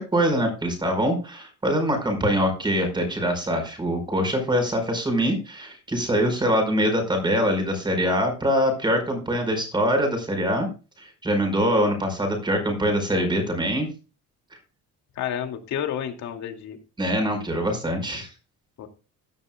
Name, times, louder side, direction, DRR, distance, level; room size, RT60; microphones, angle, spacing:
voice 1, 0.0-10.7 11.0-13.9 17.0-18.3, equal, 15° right, 5 dB, 4.9 m, -24 dB
voice 2, 15.2-16.8 18.8-18.9, left 9 dB, 60° left, 4 dB, 2.5 m, -30 dB
16.5 x 11.5 x 2.3 m, 0.33 s
cardioid pair, 160°, 32 cm